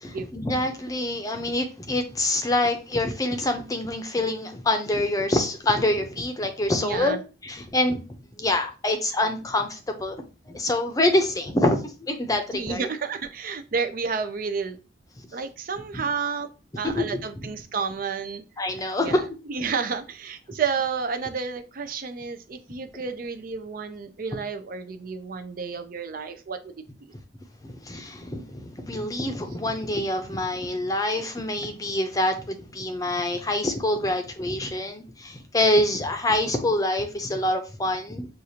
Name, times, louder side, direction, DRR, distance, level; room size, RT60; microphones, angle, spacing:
voice 1, 0.0-7.2 7.4-8.0 8.4-10.2 10.5-12.9 15.9-16.0 16.9-17.2 18.6-19.2 27.6-38.3, left 1 dB, 20° left, 0.6 m, -26 dB
voice 2, 6.8-7.2 12.5-14.8 15.3-16.5 16.8-18.4 19.0-26.7, right 5 dB, 50° right, 0.5 m, -31 dB
6.3 x 2.4 x 2.8 m
head